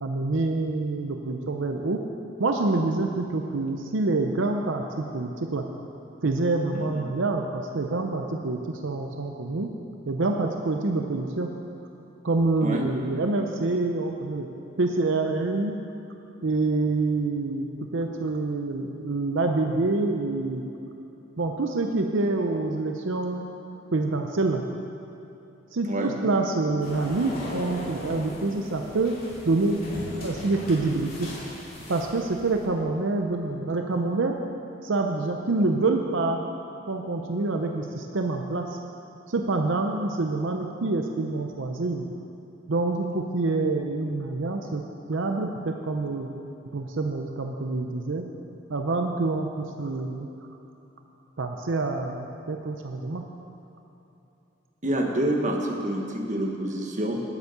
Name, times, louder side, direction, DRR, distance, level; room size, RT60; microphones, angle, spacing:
voice 1, 0.0-2.0 2.4-5.6 6.2-9.7 10.1-11.5 12.2-15.8 16.4-20.6 21.4-23.5 23.9-24.6 25.7-29.2 29.4-31.3 31.9-34.4 34.8-36.4 36.9-38.8 39.3-42.0 42.7-44.8 45.1-46.3 46.7-48.3 48.7-50.3 51.4-53.2, right 3 dB, 80° right, 3 dB, 0.7 m, -26 dB
sound 1, 26.8-32.7, left 1 dB, 50° left, 2.5 m, -38 dB
voice 2, 54.8-57.2, right 1 dB, 40° right, 1 dB, 1.3 m, -27 dB
9.8 x 8.2 x 6.8 m, 2.9 s
head